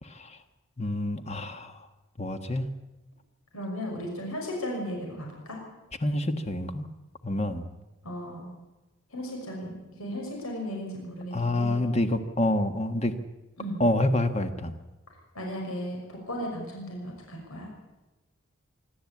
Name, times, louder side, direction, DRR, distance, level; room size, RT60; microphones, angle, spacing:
voice 1, 0.0-0.4 0.8-1.7 2.2-2.7 6.0-6.9 7.2-7.6 11.3-13.1 13.8-14.7, left 1 dB, 30° left, 8 dB, 1.4 m, -27 dB
voice 2, 3.5-5.6 8.0-8.5 9.1-11.8 13.6-13.8 15.3-17.7, equal, 80° left, 0 dB, 6.1 m, -35 dB
25.5 x 12.5 x 8.6 m, 1.1 s
head